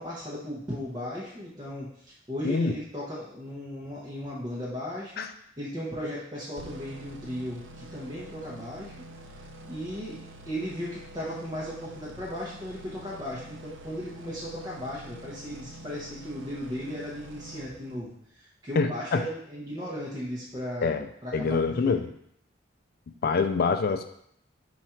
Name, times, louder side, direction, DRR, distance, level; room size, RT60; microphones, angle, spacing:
voice 1, 0.0-5.3 5.6-9.0 9.6-10.2 10.4-20.9 21.2-22.1, equal, 20° right, -6 dB, 0.7 m, -36 dB
voice 2, 2.4-2.7 5.2-5.3 18.8-19.2 20.8-21.1 21.3-22.1 23.2-24.1, left 4 dB, 50° left, 8 dB, 0.3 m, -25 dB
sound 1, 6.6-18.2, right 1 dB, 70° right, 0.5 m, -46 dB
4.1 x 2.4 x 4.4 m, 0.69 s
head